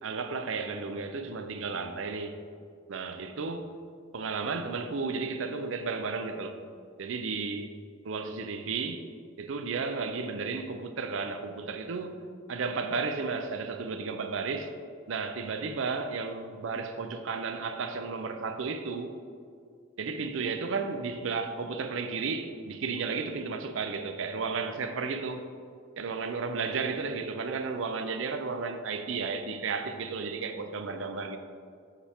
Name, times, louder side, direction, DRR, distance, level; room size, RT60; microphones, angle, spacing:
voice 1, 0.0-2.4 2.9-3.7 4.1-6.5 7.0-7.8 8.0-9.0 9.4-12.2 12.5-14.7 15.1-19.2 20.0-25.4 26.0-31.4, right 4 dB, 75° right, 0.5 m, -33 dB
7.2 x 4.3 x 3.5 m
head